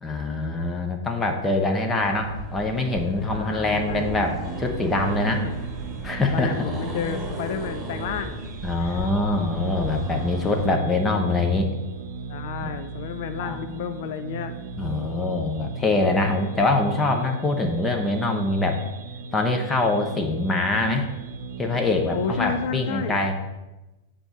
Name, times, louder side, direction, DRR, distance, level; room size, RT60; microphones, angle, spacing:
voice 1, 0.0-5.4 6.0-6.5 8.6-11.7 12.6-12.7 13.4-13.6 14.8-18.8 19.3-21.1 21.6-23.3, left 2 dB, 15° left, 3 dB, 0.8 m, -24 dB
Accelerating revving vroom, 2.0-10.7, right 1 dB, 10° right, 2.0 m, -35 dB
voice 2, 3.3-4.1 6.3-8.4 8.8-9.0 12.3-14.5 22.1-23.2, left 7 dB, 50° left, 9 dB, 0.4 m, -31 dB
sound 1, 4.4-22.7, right 5 dB, 55° right, 0.4 m, -37 dB
8.0 x 3.8 x 4.2 m, 1.0 s
figure-of-eight pair, 95°, 0 cm